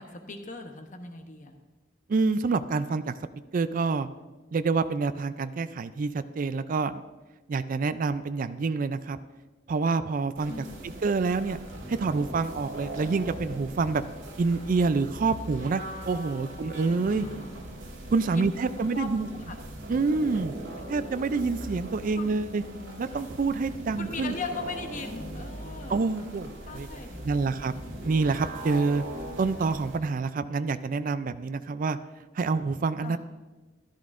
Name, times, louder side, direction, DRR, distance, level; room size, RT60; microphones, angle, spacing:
voice 1, 0.0-1.5 10.4-10.8 17.1-17.6 18.3-18.5 18.9-19.6 22.2-22.3 24.0-26.0 26.6-27.2 33.0-33.2, left 4 dB, 40° left, 5 dB, 0.9 m, -39 dB
voice 2, 2.1-3.1 3.5-4.1 4.5-7.0 7.5-9.2 9.7-11.6 11.9-14.0 14.4-17.3 18.1-19.3 19.9-20.5 20.9-22.6 23.0-24.3 25.9-26.9 27.2-27.7 28.0-29.0 29.4-32.0 32.4-33.2, right 4 dB, 45° right, 12 dB, 0.4 m, -27 dB
sound 1, 10.4-30.0, right 1 dB, 75° right, 1.9 m, -40 dB
14.0 x 11.5 x 2.5 m, 1.2 s
head